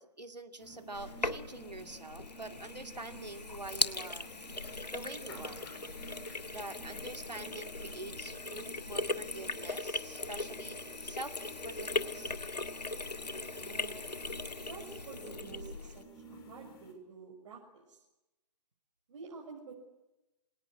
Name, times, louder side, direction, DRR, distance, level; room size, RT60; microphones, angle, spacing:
voice 1, 0.0-4.3 4.9-5.7 6.5-12.3, right 2 dB, 85° right, 6 dB, 2.6 m, -46 dB
sound 1, 0.6-16.9, equal, 35° left, 6.6 m, -52 dB
Sink (filling or washing), 0.9-16.0, left 3 dB, 85° left, 1.9 m, -39 dB
voice 2, 13.6-14.0 14.5-18.0 19.1-19.7, right 5 dB, 50° right, -2 dB, 6.4 m, -49 dB
27.0 x 19.0 x 9.7 m, 0.96 s
figure-of-eight pair, 130°, 21 cm